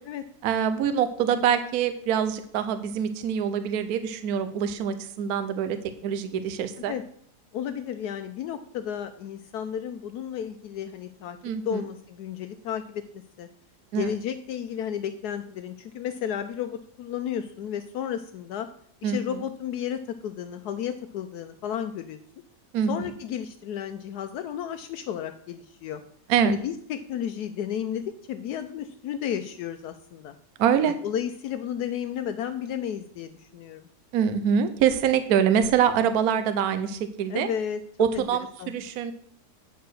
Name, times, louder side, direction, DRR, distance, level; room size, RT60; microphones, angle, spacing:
voice 1, 0.4-5.8 6.0-6.9 11.4-11.8 13.9-14.1 19.0-19.2 22.7-23.1 26.3-26.6 30.6-30.9 34.1-37.5 38.0-39.1, right 8 dB, 70° right, 10 dB, 1.1 m, -24 dB
voice 2, 7.5-11.4 11.6-13.0 13.4-13.5 14.0-18.7 19.0-22.2 22.9-26.0 26.4-30.4 30.8-33.9 37.3-37.8 38.1-38.3 38.6-38.7, left 9 dB, 75° left, 9 dB, 1.1 m, -33 dB
9.1 x 4.7 x 6.3 m, 0.65 s
omnidirectional pair, 1.8 m